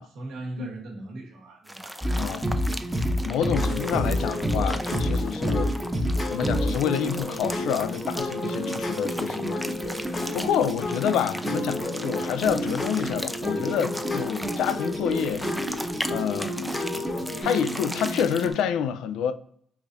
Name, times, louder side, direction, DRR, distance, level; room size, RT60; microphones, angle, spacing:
voice 1, 0.0-2.4, right 2 dB, 90° right, 1.3 m, -39 dB
sound 1, 1.7-18.6, equal, ahead, 0.3 m, -38 dB
sound 2, 2.0-18.5, equal, 20° right, 0.7 m, -30 dB
voice 2, 2.2-2.5 3.2-5.7 6.3-9.6 9.9-15.5 16.1-16.6 17.4-19.3, left 8 dB, 90° left, 0.3 m, -28 dB
sound 3, 3.6-17.4, left 2 dB, 35° left, 1.0 m, -34 dB
4.8 x 2.6 x 2.5 m
cardioid pair, 90°, 0 cm